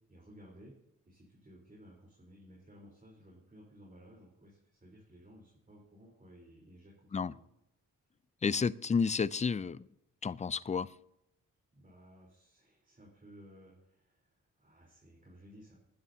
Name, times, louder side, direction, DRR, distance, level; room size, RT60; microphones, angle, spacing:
voice 1, 0.1-0.7 1.0-7.4 11.7-15.8, equal, 25° right, 3.8 m, -57 dB
voice 2, 8.4-9.9 10.2-10.9, left 5 dB, 20° left, 0.4 m, -31 dB
20.0 x 10.0 x 2.8 m
cardioid pair, 85°, 33 cm